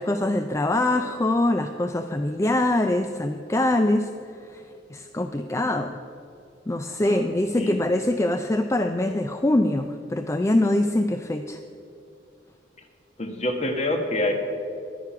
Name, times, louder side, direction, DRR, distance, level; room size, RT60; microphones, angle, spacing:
voice 1, 0.0-4.1 4.5-4.6 4.9-6.0 6.7-11.6, left 1 dB, 15° left, 7 dB, 0.4 m, -23 dB
voice 2, 7.0-7.8 13.2-14.3, left 1 dB, 40° left, 5 dB, 1.3 m, -27 dB
11.0 x 9.4 x 5.9 m, 2.7 s
head